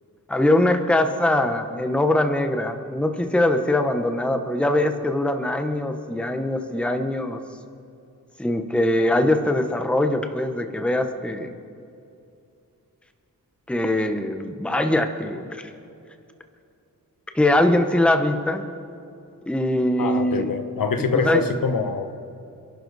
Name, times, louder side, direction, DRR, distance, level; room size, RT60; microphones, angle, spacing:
voice 1, 0.3-7.4 8.4-11.6 13.7-15.7 17.3-18.6 19.5-20.5 21.1-21.4, left 1 dB, 5° left, 6 dB, 0.9 m, -22 dB
voice 2, 20.0-22.1, left 5 dB, 70° left, 7 dB, 1.2 m, -24 dB
27.5 x 11.5 x 4.0 m, 2.6 s
wide cardioid pair, 175°, 35 cm